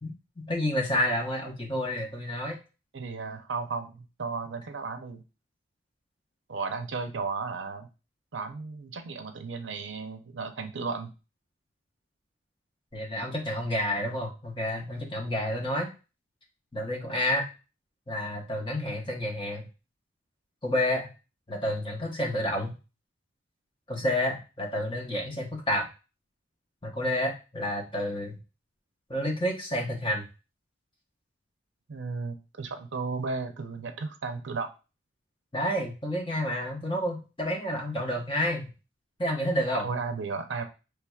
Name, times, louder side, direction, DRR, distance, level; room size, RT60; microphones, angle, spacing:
voice 1, 0.0-2.6 12.9-15.9 16.7-17.5 18.1-19.7 20.6-21.1 21.5-22.8 23.9-25.9 26.8-28.4 29.1-30.2 35.5-38.7 39.2-39.9, left 1 dB, 25° left, -1 dB, 1.0 m, -29 dB
voice 2, 2.9-5.2 6.5-7.9 8.3-11.1 31.9-34.7 39.8-40.7, right 4 dB, 65° right, 7 dB, 0.6 m, -34 dB
4.6 x 3.3 x 2.3 m, 0.30 s
head